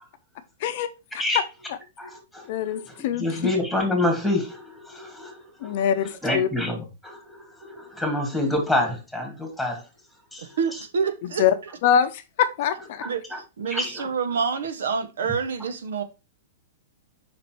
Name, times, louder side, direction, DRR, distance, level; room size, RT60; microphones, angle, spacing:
voice 1, 0.6-1.2 1.7-1.8 2.5-3.5 5.6-6.5 11.4-11.5 11.8-13.0, left 9 dB, 55° left, 0.6 m, -24 dB
voice 2, 2.0-2.5 3.2-5.7 6.2-6.8 7.0-9.8 10.3-10.5 13.3-13.4 13.7-14.1, left 1 dB, ahead, 2.1 m, -27 dB
voice 3, 10.4-11.4 13.0-16.0, right 6 dB, 80° right, 1.0 m, -27 dB
5.2 x 4.1 x 4.5 m
hypercardioid pair, 130°, 0 cm